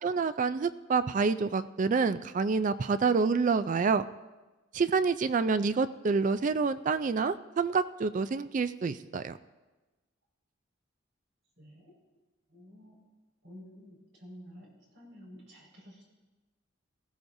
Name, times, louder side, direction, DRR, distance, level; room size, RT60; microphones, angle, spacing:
voice 1, 0.0-4.0 4.7-9.4, right 4 dB, 40° right, 13 dB, 0.3 m, -27 dB
voice 2, 11.6-11.9 12.5-12.9 13.4-16.0, equal, 60° right, -2 dB, 5.0 m, -51 dB
19.5 x 15.0 x 2.7 m, 1.2 s
head